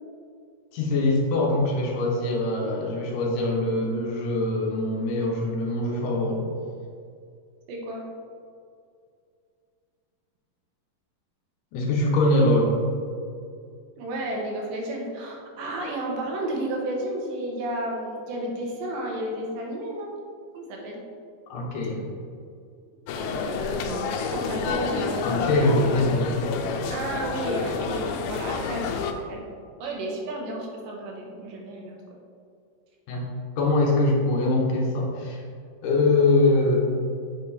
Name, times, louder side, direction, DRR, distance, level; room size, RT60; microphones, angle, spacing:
voice 1, 0.7-6.5 11.7-12.8 21.5-22.1 25.2-26.4 33.1-33.3 33.6-35.4 35.8-36.8, left 2 dB, 70° left, -2 dB, 2.4 m, -23 dB
voice 2, 7.7-8.0 14.0-20.1 20.5-21.0 23.1-24.0 24.3-25.5 26.9-29.5 29.8-32.0, right 1 dB, 75° right, -1 dB, 2.8 m, -32 dB
sound 1, 23.1-29.1, left 5 dB, 85° left, 2.4 m, -29 dB
7.7 x 4.4 x 4.2 m, 2.3 s
omnidirectional pair, 4.2 m